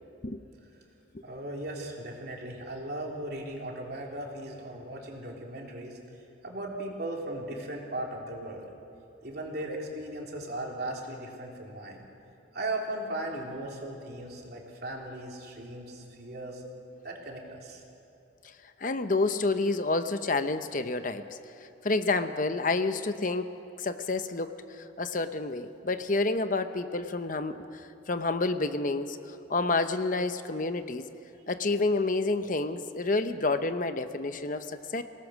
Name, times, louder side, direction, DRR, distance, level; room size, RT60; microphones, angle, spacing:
voice 1, 1.2-6.0 6.4-8.7 9.2-12.1 12.5-16.6 17.0-17.8, right 1 dB, 55° right, -1 dB, 3.5 m, -37 dB
voice 2, 18.8-21.4 21.8-23.5 23.8-31.0 31.5-35.0, left 3 dB, 45° left, 9 dB, 0.8 m, -29 dB
29.0 x 18.5 x 6.4 m, 2.9 s
head